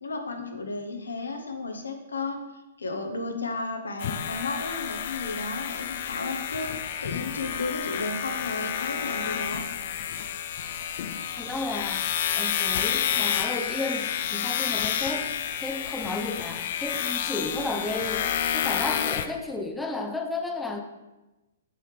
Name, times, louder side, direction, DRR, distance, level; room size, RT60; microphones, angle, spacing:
voice 1, 0.0-2.4 2.8-9.6, left 3 dB, 85° left, 4 dB, 0.9 m, -33 dB
sound 1, 4.0-19.3, left 9 dB, 55° left, 0.4 m, -30 dB
sound 2, 5.8-15.7, right 2 dB, 35° right, 2.1 m, -53 dB
voice 2, 11.4-15.3 15.6-20.8, left 2 dB, 5° left, 3 dB, 0.6 m, -33 dB
6.8 x 5.6 x 3.3 m, 1.0 s
hypercardioid pair, 125°, 0 cm